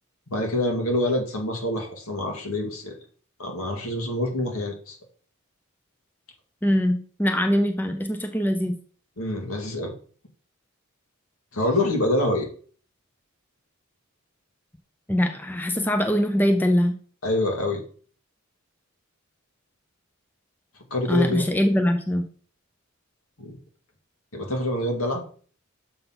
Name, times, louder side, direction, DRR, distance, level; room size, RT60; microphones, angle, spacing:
voice 1, 0.3-2.9 3.4-5.0 9.2-9.9 11.5-12.5 17.2-17.8 20.9-21.5 23.4-23.6 24.3-25.2, left 1 dB, 75° left, 2 dB, 2.0 m, -26 dB
voice 2, 6.6-8.7 15.1-16.9 21.1-22.3, equal, 10° left, 6 dB, 0.5 m, -22 dB
6.8 x 3.9 x 5.7 m, 0.43 s
head